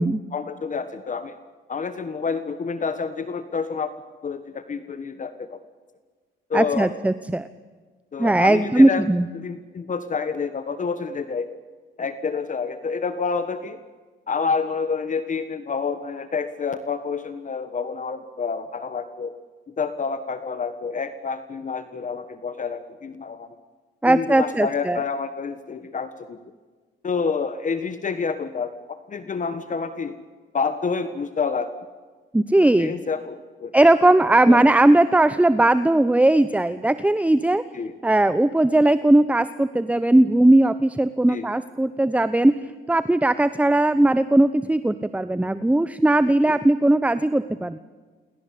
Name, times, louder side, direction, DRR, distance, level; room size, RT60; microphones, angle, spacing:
voice 1, 0.0-1.3 1.7-3.9 4.2-5.6 6.5-6.9 8.1-9.0 9.3-11.5 12.0-13.8 14.3-19.3 19.8-23.5 24.0-26.4 27.0-30.1 30.5-31.7 32.8-33.7 34.5-34.7 37.7-37.9 41.3-41.4 46.4-46.5, left 5 dB, 40° left, 11 dB, 1.6 m, -28 dB
voice 2, 6.5-7.5 8.2-9.3 24.0-25.0 32.3-32.9 33.7-37.6 38.0-42.5 42.9-47.8, right 1 dB, 5° right, 13 dB, 0.9 m, -18 dB
28.5 x 23.0 x 8.6 m, 1.4 s
cardioid pair, 90°, 20 cm